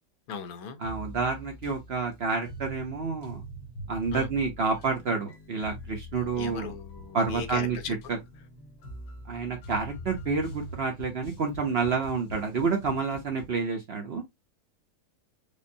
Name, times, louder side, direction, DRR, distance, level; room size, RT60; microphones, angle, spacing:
voice 1, 0.3-0.8 4.1-4.3 6.4-7.9, left 6 dB, 75° left, 1.1 m, -38 dB
sound 1, 0.8-13.6, equal, 90° left, 1.6 m, -43 dB
voice 2, 0.8-3.4 3.9-6.7 7.1-8.2 9.3-14.2, right 4 dB, 50° right, 0.8 m, -29 dB
5.2 x 2.0 x 2.7 m
omnidirectional pair, 1.7 m